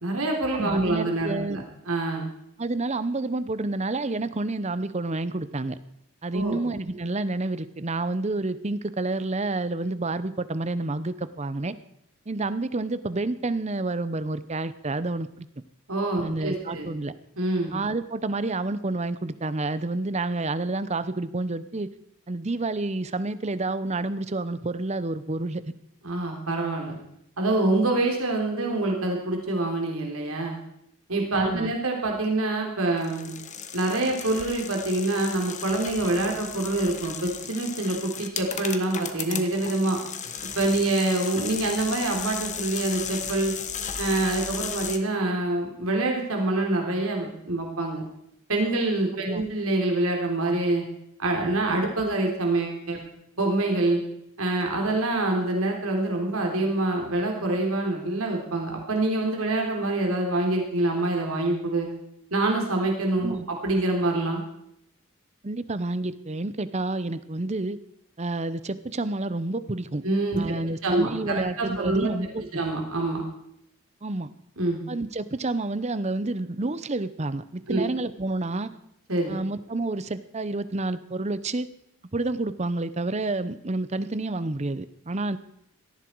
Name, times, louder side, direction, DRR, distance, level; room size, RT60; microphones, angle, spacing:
voice 1, 0.0-2.3 6.3-6.6 15.9-16.9 17.4-17.7 26.0-27.0 27.4-30.6 31.1-33.3 33.7-40.0 40.6-43.5 44.0-48.0 48.5-50.8 51.2-53.0 53.4-54.0 54.4-61.9 62.3-63.4 63.6-64.4 70.0-70.4 70.8-72.1 72.5-73.2 74.6-74.8 77.7-77.9 79.1-79.3, right 2 dB, 75° right, 1 dB, 3.6 m, -26 dB
voice 2, 0.5-1.7 2.6-5.8 6.2-11.7 12.3-15.5 16.2-17.1 17.7-21.9 22.3-25.6 31.4-31.7 49.2-49.4 63.2-63.5 65.4-67.8 68.2-70.0 70.4-72.4 74.0-74.3 74.9-78.7 79.3-81.7 82.1-85.4, right 2 dB, 30° right, 14 dB, 0.7 m, -29 dB
sound 1, 33.0-45.0, left 7 dB, 35° left, 1.2 m, -35 dB
17.5 x 14.5 x 4.6 m, 0.75 s
head